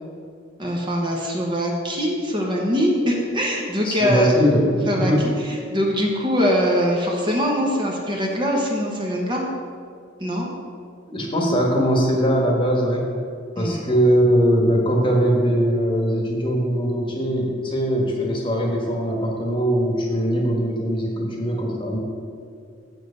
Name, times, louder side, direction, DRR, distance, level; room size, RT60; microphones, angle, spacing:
voice 1, 0.6-4.3 4.9-5.1 5.7-9.4 10.2-10.5 13.6-13.8, equal, 25° right, -1 dB, 1.1 m, -22 dB
voice 2, 3.8-5.3 11.1-13.1 13.6-22.0, equal, 25° left, 0 dB, 1.3 m, -21 dB
7.7 x 7.5 x 5.4 m, 2.3 s
head